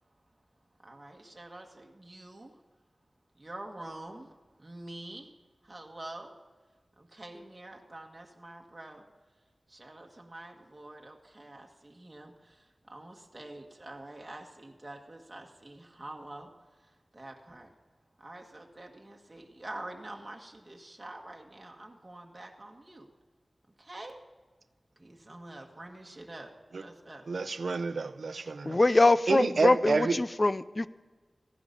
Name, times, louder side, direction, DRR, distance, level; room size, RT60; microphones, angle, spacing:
voice 1, 0.8-2.6 3.4-5.3 5.6-6.4 7.0-9.0 9.7-16.5 16.8-17.7 18.2-23.1 23.8-24.2 25.0-27.3, right 1 dB, 25° right, 1.7 m, -46 dB
voice 2, 27.3-28.8 29.3-30.2, right 4 dB, 80° right, 0.7 m, -29 dB
voice 3, 28.7-30.9, left 2 dB, 35° left, 0.6 m, -23 dB
15.5 x 11.0 x 5.4 m
wide cardioid pair, 80°, 0 cm